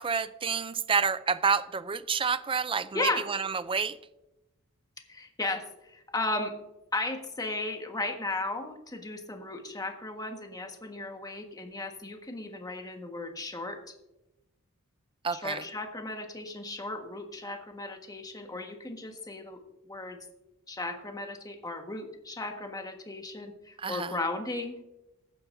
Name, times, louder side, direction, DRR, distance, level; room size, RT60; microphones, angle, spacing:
voice 1, 0.0-4.0 15.2-15.6 23.8-24.1, right 5 dB, 25° right, 0.4 m, -29 dB
voice 2, 2.9-3.2 5.1-6.5 6.9-13.9 15.3-20.2 20.7-24.7, left 2 dB, 15° left, 1.5 m, -35 dB
15.0 x 11.5 x 2.7 m
head